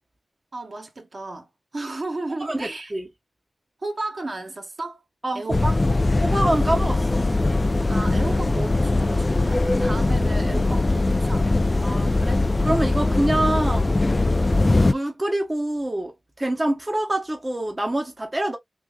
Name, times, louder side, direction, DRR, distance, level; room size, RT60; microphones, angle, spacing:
voice 1, 0.5-2.9 3.8-5.0 5.3-5.8 7.9-11.5, right 2 dB, 50° right, 1.0 m, -33 dB
voice 2, 2.4-3.1 5.2-5.6 6.2-7.2 11.8-13.9 14.9-18.6, right 1 dB, 25° right, 0.8 m, -26 dB
sound 1, 5.5-14.9, left 2 dB, 35° left, 0.3 m, -21 dB
sound 2, 7.3-14.9, left 1 dB, 20° left, 1.1 m, -42 dB
3.4 x 3.0 x 2.2 m
cardioid pair, 55°, 0 cm